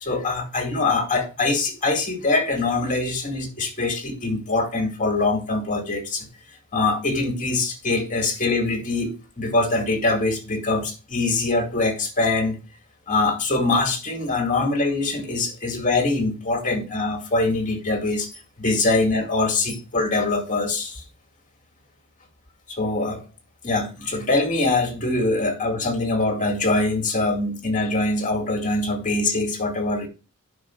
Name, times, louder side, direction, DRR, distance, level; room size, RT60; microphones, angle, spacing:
voice 1, 0.0-6.3 6.7-12.6 13.1-18.3 18.6-21.0 22.7-23.2 23.6-30.1, left 2 dB, 35° left, 2.3 m, -23 dB
9.6 x 6.0 x 4.7 m
head